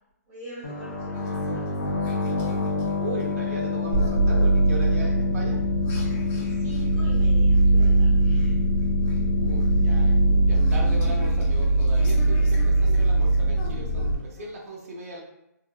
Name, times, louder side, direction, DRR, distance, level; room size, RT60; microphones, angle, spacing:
voice 1, 0.3-1.8 6.5-8.6, right 1 dB, 15° right, -11 dB, 1.3 m, -43 dB
sound 1, 0.6-12.1, left 4 dB, 55° left, 0.8 m, -29 dB
sound 2, 1.1-14.5, left 3 dB, 20° left, 0.6 m, -46 dB
voice 2, 3.0-5.7 9.4-10.2 10.4-15.2, right 2 dB, 55° right, -2 dB, 0.7 m, -37 dB
sound 3, 3.9-14.2, right 2 dB, 85° right, 0.8 m, -21 dB
2.7 x 2.3 x 2.3 m, 0.86 s
hypercardioid pair, 140°, 9 cm